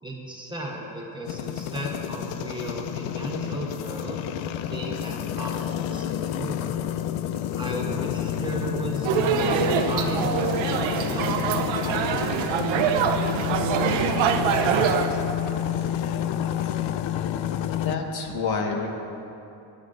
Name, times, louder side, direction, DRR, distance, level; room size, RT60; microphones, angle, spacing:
voice 1, 0.0-4.2 4.6-6.8 7.6-14.2 14.6-15.4, right 1 dB, 10° right, -2 dB, 1.1 m, -36 dB
sound 1, 1.3-18.0, left 10 dB, 85° left, 0.6 m, -29 dB
sound 2, 9.0-15.1, right 7 dB, 85° right, 0.9 m, -24 dB
voice 2, 17.8-18.9, left 5 dB, 60° left, 2 dB, 1.4 m, -27 dB
21.5 x 11.5 x 2.6 m, 2.9 s
cardioid pair, 165°, 45 cm